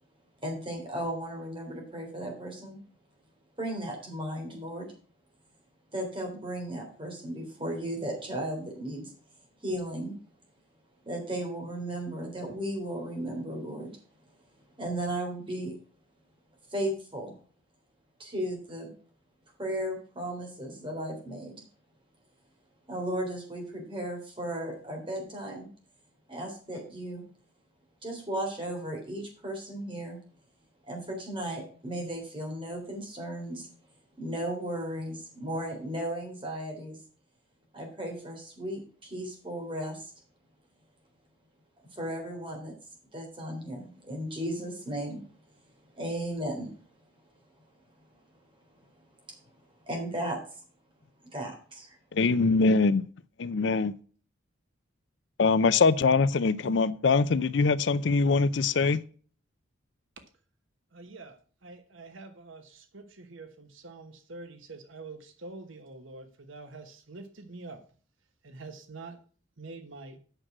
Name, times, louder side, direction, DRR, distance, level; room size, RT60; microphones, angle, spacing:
voice 1, 0.4-2.8 3.6-4.9 5.9-9.1 9.6-10.2 11.1-13.9 14.8-15.7 16.7-17.3 18.2-18.9 19.6-21.6 22.9-25.7 26.3-27.2 28.0-30.2 30.9-33.7 34.2-37.0 37.7-40.1 41.9-42.7 43.1-45.2 45.9-46.7 49.3-49.4 49.9-50.4 51.3-52.0 56.6-56.7, right 1 dB, 25° right, 3.5 m, -35 dB
voice 2, 52.1-53.0 53.4-53.9 55.4-59.0, left 4 dB, 60° left, 0.5 m, -23 dB
voice 3, 60.9-67.8 68.4-69.2 69.6-70.2, right 3 dB, 75° right, 1.2 m, -46 dB
8.8 x 6.1 x 6.0 m
head